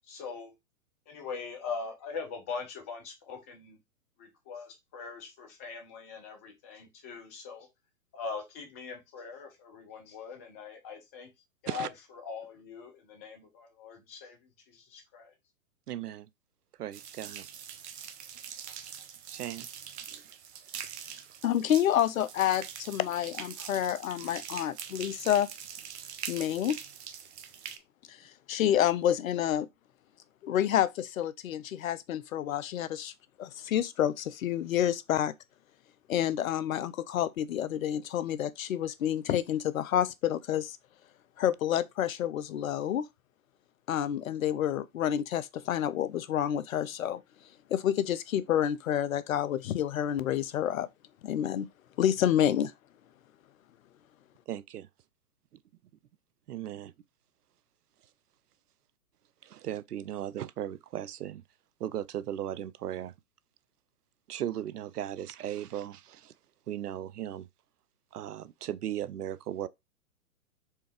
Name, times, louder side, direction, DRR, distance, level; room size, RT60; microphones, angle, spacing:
voice 1, 0.1-0.5 1.1-3.8 4.2-7.7 8.1-11.3 11.6-11.9 12.2-14.4 14.7-15.3, left 5 dB, 10° left, 0.4 m, -41 dB
voice 2, 15.9-16.3 16.8-17.5 19.3-19.7 20.1-20.2 54.5-54.9 56.5-56.9 59.4-61.4 61.8-63.1 64.3-66.3 66.7-67.5 68.1-69.7, right 11 dB, 85° right, 0.6 m, -37 dB
sound 1, 16.9-27.8, right 8 dB, 50° right, 0.8 m, -43 dB
voice 3, 21.4-25.5 26.3-26.8 28.1-29.7 30.4-33.1 33.4-35.3 36.1-40.8 41.4-43.1 43.9-47.2 47.7-50.9 51.2-51.7 52.0-52.7, left 10 dB, 65° left, 0.6 m, -29 dB
4.6 x 3.4 x 3.3 m
hypercardioid pair, 125°, 45 cm